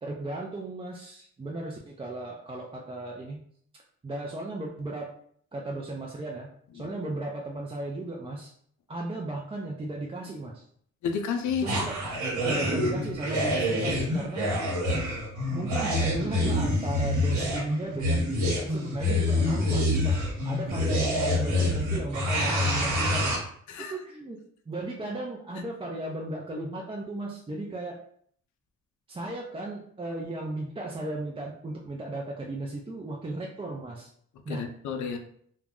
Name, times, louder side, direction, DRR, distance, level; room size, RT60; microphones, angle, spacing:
voice 1, 0.0-3.4 4.0-5.1 5.5-6.5 6.7-8.5 8.9-10.6 11.6-12.0 12.4-14.5 15.5-20.2 20.4-23.4 23.9-24.4 24.7-28.0 29.1-34.1 34.4-34.7, right 2 dB, 20° right, -2 dB, 0.4 m, -35 dB
voice 2, 11.0-11.7 23.7-23.9 34.5-35.2, left 6 dB, 75° left, 5 dB, 0.5 m, -30 dB
sound 1, 11.6-23.4, left 1 dB, 75° right, 0.9 m, -26 dB
2.3 x 2.1 x 3.6 m, 0.63 s
supercardioid pair, 65°, 30 cm